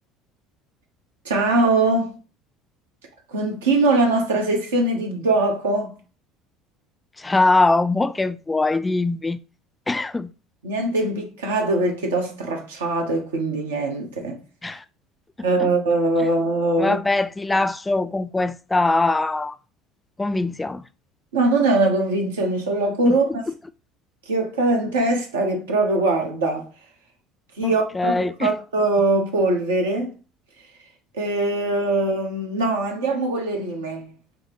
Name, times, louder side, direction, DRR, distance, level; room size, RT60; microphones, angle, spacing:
voice 1, 1.2-2.2 3.3-5.9 10.6-14.4 15.4-17.0 21.3-23.4 24.3-26.7 27.6-30.1 31.1-34.1, right 2 dB, 80° right, 0.9 m, -22 dB
voice 2, 7.2-9.4 9.9-10.3 14.6-14.8 15.6-15.7 16.8-19.6 20.2-20.8 23.1-23.2 27.6-28.5, left 2 dB, 15° left, 0.3 m, -22 dB
4.9 x 2.1 x 3.0 m
hypercardioid pair, 65°, 0 cm